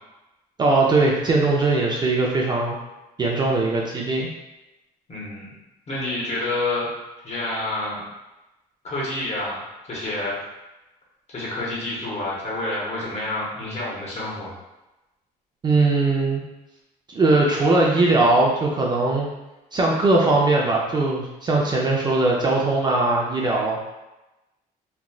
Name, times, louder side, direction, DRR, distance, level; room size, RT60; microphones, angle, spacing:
voice 1, 0.6-2.8 3.2-4.3 15.6-16.4 17.1-19.3 19.7-23.8, right 2 dB, 25° right, -3 dB, 0.4 m, -20 dB
voice 2, 5.1-5.5 5.9-6.9 7.2-8.0 8.8-9.6 9.9-10.4 11.3-14.5, left 2 dB, 40° left, -6 dB, 1.2 m, -28 dB
3.0 x 2.4 x 2.3 m, 1.0 s
cardioid pair, 110°, 17 cm